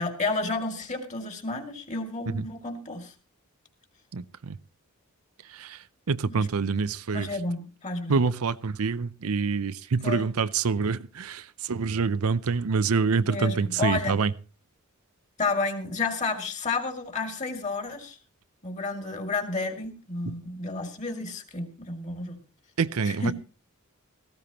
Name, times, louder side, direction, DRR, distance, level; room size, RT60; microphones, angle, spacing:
voice 1, 0.0-3.1 6.3-6.5 7.1-8.1 10.0-10.3 13.2-14.2 15.4-18.2 18.6-22.4 23.1-23.3, left 3 dB, 35° left, 2.4 m, -31 dB
voice 2, 4.1-4.6 5.5-7.3 8.1-14.3 20.3-20.4 22.8-23.3, right 5 dB, 70° right, 0.6 m, -26 dB
17.5 x 15.0 x 3.0 m
head